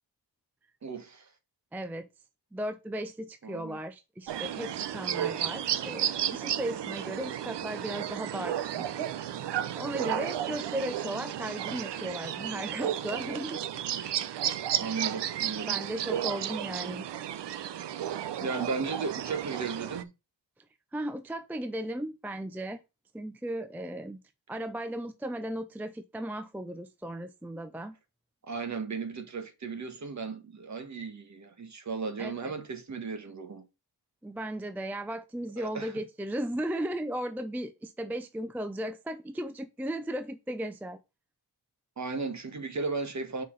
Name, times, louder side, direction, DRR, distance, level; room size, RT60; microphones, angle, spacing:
voice 1, 0.8-1.3 3.4-3.8 14.8-15.8 18.4-20.1 28.5-33.6 35.6-35.9 42.0-43.4, right 4 dB, 40° right, 1.4 m, -35 dB
voice 2, 1.7-2.1 2.5-9.1 9.7-13.6 15.7-17.0 20.9-22.8 23.1-24.2 24.5-28.0 32.2-32.5 34.2-41.0, right 1 dB, 5° right, 0.4 m, -36 dB
sound 1, 4.3-20.0, right 10 dB, 70° right, 0.7 m, -33 dB
5.6 x 4.1 x 6.2 m
wide cardioid pair, 125°, 43 cm